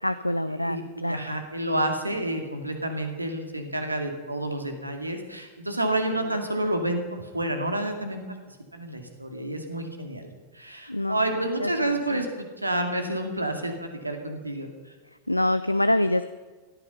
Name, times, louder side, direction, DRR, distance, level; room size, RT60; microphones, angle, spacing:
voice 1, 0.0-1.2 6.1-6.3 10.9-12.2 15.3-16.3, left 1 dB, 85° left, 13 dB, 0.5 m, -26 dB
voice 2, 1.1-14.7, right 1 dB, 85° right, 5 dB, 2.2 m, -29 dB
17.5 x 13.5 x 5.5 m, 1.3 s
figure-of-eight pair, 90°, 0 cm